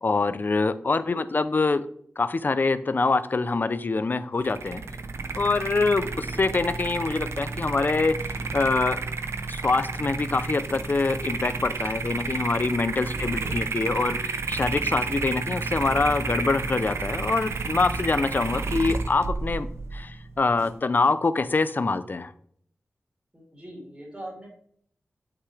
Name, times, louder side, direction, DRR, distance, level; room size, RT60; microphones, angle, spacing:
voice 1, 0.0-1.9 2.2-4.8 5.3-9.0 9.5-22.3, left 3 dB, 45° left, 13 dB, 0.6 m, -25 dB
voice 2, 0.8-1.2 13.1-13.6 23.3-24.5, equal, 20° right, -5 dB, 3.3 m, -42 dB
sound 1, 4.4-20.7, right 4 dB, 80° right, 0.7 m, -31 dB
8.1 x 5.9 x 3.3 m, 0.64 s
wide cardioid pair, 75°, 4 cm